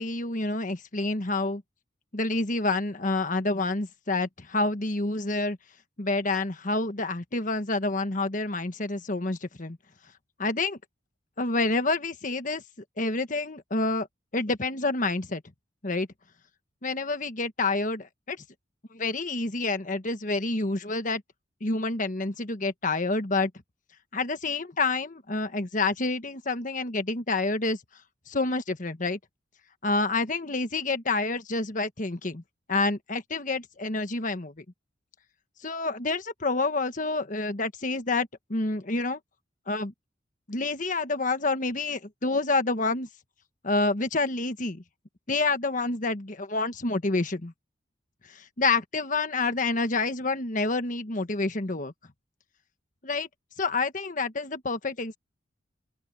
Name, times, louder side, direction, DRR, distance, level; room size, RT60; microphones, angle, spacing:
voice 1, 0.0-1.6 2.1-5.6 6.0-9.8 10.4-10.8 11.4-12.6 13.0-14.1 14.3-15.4 15.8-16.1 16.8-18.4 18.9-21.2 21.6-23.5 24.1-27.8 28.3-29.2 29.8-32.4 32.7-34.6 35.6-39.2 39.7-39.9 40.5-43.1 43.6-44.8 45.3-47.5 48.3-51.9 53.0-53.3 53.6-55.2, left 3 dB, 45° left, 1.4 m, -28 dB
open air
head